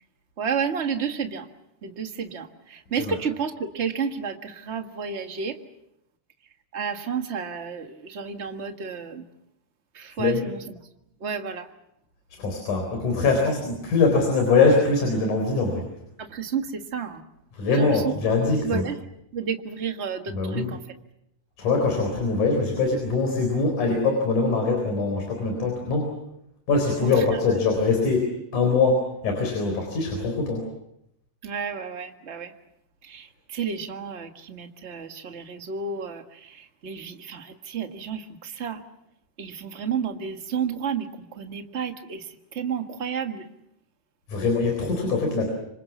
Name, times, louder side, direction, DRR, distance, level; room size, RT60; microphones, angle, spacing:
voice 1, 0.4-1.5 1.8-5.6 6.7-9.2 9.9-10.6 11.2-11.7 16.2-17.2 17.7-18.1 18.6-19.0 19.3-20.8 27.0-27.5 31.4-32.5 33.0-38.8 39.4-43.5, right 6 dB, 35° right, 6 dB, 1.1 m, -31 dB
voice 2, 12.4-15.9 17.5-18.8 20.3-20.7 21.6-26.1 26.7-30.7 44.3-45.5, left 3 dB, 70° left, 3 dB, 5.5 m, -23 dB
26.5 x 26.0 x 7.1 m, 0.81 s
omnidirectional pair, 3.7 m